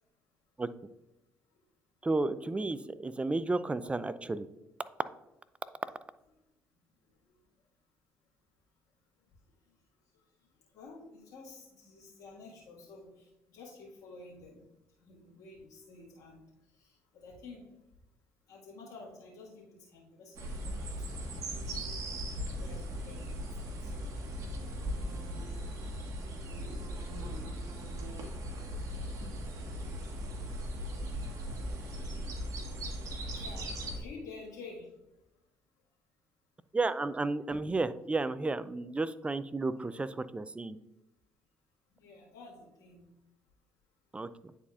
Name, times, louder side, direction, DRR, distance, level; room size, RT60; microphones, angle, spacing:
voice 1, 2.0-4.5 36.7-40.8 44.1-44.3, right 3 dB, 20° right, 14 dB, 0.4 m, -32 dB
voice 2, 10.7-14.6 15.0-16.4 16.7-17.6 18.5-21.9 22.5-24.2 28.9-29.0 29.4-29.5 33.0-34.9 42.0-43.1, left 3 dB, 65° left, -6 dB, 1.8 m, -51 dB
sound 1, 20.4-34.0, equal, 55° right, 1.4 m, -38 dB
9.6 x 4.2 x 2.4 m, 0.93 s
hypercardioid pair, 60°, 6 cm